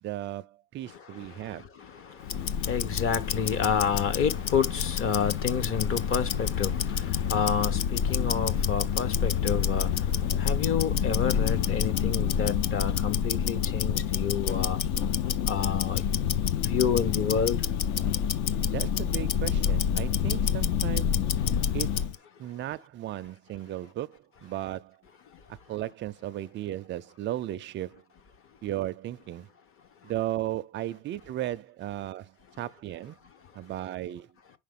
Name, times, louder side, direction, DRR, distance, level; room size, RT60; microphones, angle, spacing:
voice 1, 0.0-1.7 18.6-21.3 21.7-22.1 22.4-25.0 25.5-28.0 28.6-29.5 30.0-33.2 33.5-34.3, right 13 dB, 30° right, 0.4 m, -35 dB
voice 2, 1.9-14.8 15.5-16.0 16.6-17.6, left 7 dB, 35° left, 1.0 m, -29 dB
Tick-tock, 2.2-22.2, left 8 dB, 50° left, 0.7 m, -28 dB
6.3 x 5.1 x 3.7 m
supercardioid pair, 140°, 39 cm